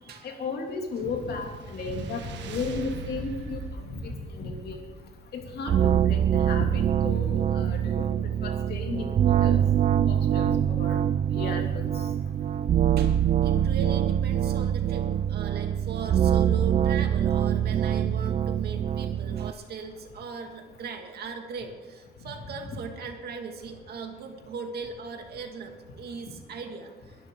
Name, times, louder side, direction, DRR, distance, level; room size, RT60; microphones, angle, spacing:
voice 1, 0.2-3.6 3.9-4.8 5.3-8.1 8.4-9.6 10.1-11.0 11.3-11.9, left 4 dB, 65° left, 2 dB, 2.7 m, -34 dB
sound 1, 0.7-6.2, right 4 dB, 85° right, 1.5 m, -41 dB
sound 2, 5.7-19.5, right 9 dB, 40° right, 0.4 m, -24 dB
voice 2, 13.0-27.2, right 5 dB, 65° right, 4 dB, 2.2 m, -39 dB
22.0 x 12.0 x 3.8 m, 1.3 s
cardioid pair, 140°, 18 cm